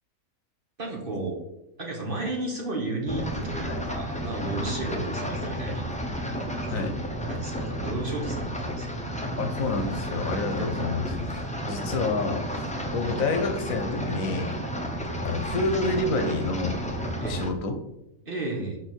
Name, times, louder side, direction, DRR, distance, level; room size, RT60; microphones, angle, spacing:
voice 1, 0.8-1.4 1.8-5.9 6.7-6.9 7.3-9.0 17.2-17.4 18.2-18.8, right 2 dB, 40° right, -1 dB, 1.5 m, -33 dB
sound 1, 3.1-17.5, equal, 10° left, 0.6 m, -32 dB
voice 2, 9.4-12.5 12.9-14.6 15.2-16.8 17.3-17.8, left 3 dB, 75° left, 7 dB, 1.2 m, -28 dB
6.6 x 4.3 x 4.4 m, 0.86 s
omnidirectional pair, 1.4 m